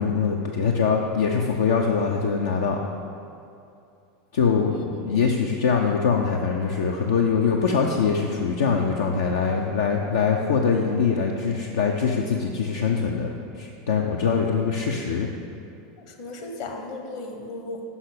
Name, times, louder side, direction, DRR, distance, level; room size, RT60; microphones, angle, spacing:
voice 1, 0.0-2.8 4.3-15.3, left 5 dB, 70° left, 1 dB, 0.5 m, -23 dB
voice 2, 4.7-5.2 16.0-17.8, left 2 dB, 50° left, 3 dB, 1.1 m, -36 dB
5.9 x 5.6 x 6.6 m, 2.6 s
figure-of-eight pair, 85°, 0 cm